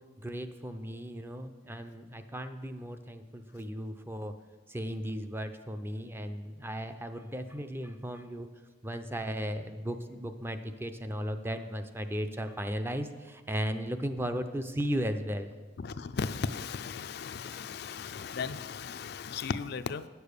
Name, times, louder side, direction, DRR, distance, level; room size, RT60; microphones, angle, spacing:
voice 1, 0.2-4.3 4.7-8.5 8.8-15.5, equal, 10° right, 8 dB, 0.5 m, -36 dB
voice 2, 15.8-20.1, left 5 dB, 55° left, 11 dB, 0.4 m, -36 dB
9.4 x 6.8 x 6.6 m, 1.3 s
head